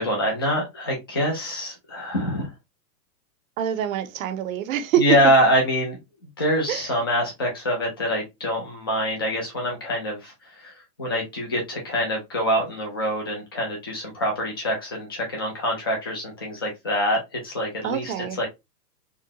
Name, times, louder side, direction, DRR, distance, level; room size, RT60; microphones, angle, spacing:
voice 1, 0.0-2.5 5.0-6.0 6.4-18.5, equal, 15° left, 0.3 m, -25 dB
voice 2, 3.6-5.0 6.7-6.9 17.8-18.4, right 10 dB, 55° right, 0.7 m, -26 dB
3.8 x 2.1 x 2.8 m
hypercardioid pair, 145°, 50 cm